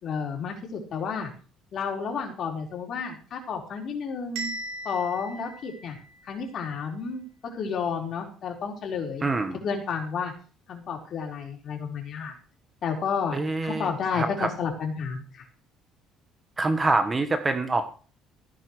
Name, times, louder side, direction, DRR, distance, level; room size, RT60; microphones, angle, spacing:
voice 1, 0.0-1.3 1.7-4.5 4.8-6.0 6.3-9.3 9.6-10.3 10.7-12.3 12.8-13.4 13.6-15.4, left 6 dB, 45° left, 1 dB, 4.7 m, -31 dB
Bell, 4.4-6.4, right 2 dB, 90° right, 4.6 m, -38 dB
voice 2, 9.2-9.6 13.3-14.5 16.6-17.9, right 3 dB, 20° right, 9 dB, 1.3 m, -26 dB
16.0 x 9.5 x 4.9 m, 0.38 s
cardioid pair, 140°, 0 cm